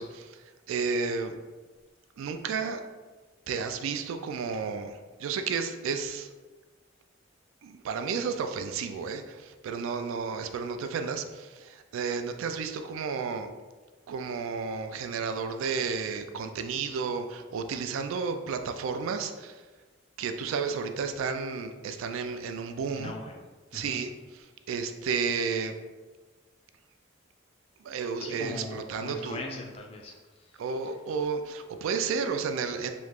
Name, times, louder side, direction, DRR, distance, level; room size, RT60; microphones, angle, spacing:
voice 1, 0.0-1.4 2.2-2.8 3.5-6.3 7.6-13.5 14.1-19.6 20.2-23.1 23.7-24.1 24.7-25.8 27.8-29.4 30.6-32.9, right 5 dB, 85° right, 8 dB, 0.3 m, -32 dB
voice 2, 22.9-23.4 23.7-24.0 28.2-30.6, left 2 dB, 30° left, 1 dB, 0.3 m, -40 dB
3.0 x 2.3 x 3.4 m, 1.3 s
head